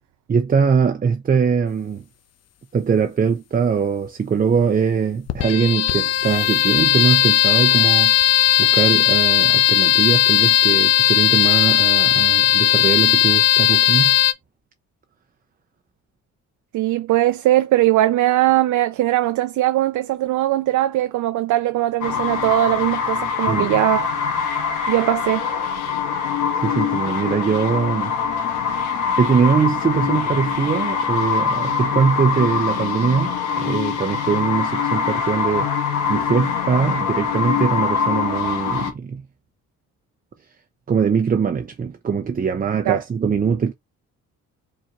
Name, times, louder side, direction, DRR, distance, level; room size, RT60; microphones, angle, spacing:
voice 1, 0.3-2.0 2.7-14.2 23.5-23.7 26.6-28.1 29.2-39.2 40.9-43.7, right 6 dB, 30° right, 0.6 m, -21 dB
sound 1, 5.3-14.3, left 12 dB, 55° left, 0.8 m, -16 dB
voice 2, 16.7-24.1 24.9-25.5 42.9-43.0, right 15 dB, 75° right, 0.6 m, -20 dB
sound 2, 22.0-38.9, left 6 dB, 85° left, 1.3 m, -23 dB
4.5 x 4.3 x 2.4 m
cardioid pair, 90°, 30 cm